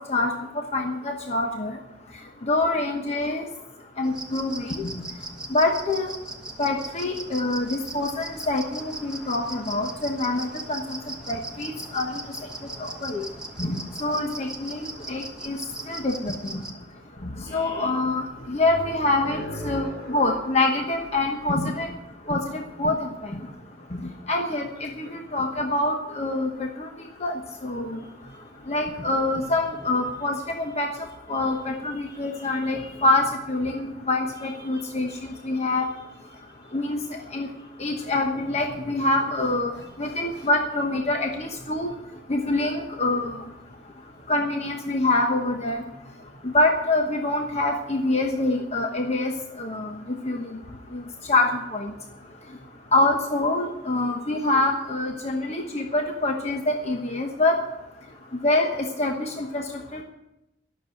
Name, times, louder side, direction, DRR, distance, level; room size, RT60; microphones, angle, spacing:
voice 1, 0.7-1.7 2.5-3.4 4.0-4.9 5.5-6.1 6.6-11.0 11.3-12.2 13.0-13.2 13.6-14.8 15.1-15.6 15.9-16.3 17.5-21.9 22.3-23.1 24.3-25.1 25.3-26.7 27.2-27.3 27.6-28.0 28.7-30.9 31.3-35.9 36.7-37.0 37.3-37.5 37.8-39.7 40.0-41.9 42.3-43.4 44.3-45.8 46.4-49.3 49.6-49.9 50.3-50.5 50.9-51.0 51.3-51.9 52.9-57.5 58.4-59.6 59.9-60.0, left 2 dB, 40° left, 2 dB, 1.1 m, -25 dB
sound 1, 4.0-16.7, right 2 dB, 5° right, 1.4 m, -39 dB
voice 2, 17.4-21.6 22.2-22.3 22.6-22.7 24.7-25.2 25.6-25.7 27.8-33.4 33.7-33.8 34.3-42.8 43.1-43.2 44.1-44.6 44.9-45.8 46.3-46.4 47.2-47.4 47.9-48.0 50.4-50.7 51.1-52.0 52.3-53.1 54.5-54.7, equal, 85° left, -1 dB, 5.2 m, -45 dB
12.5 x 7.0 x 8.8 m, 0.90 s
head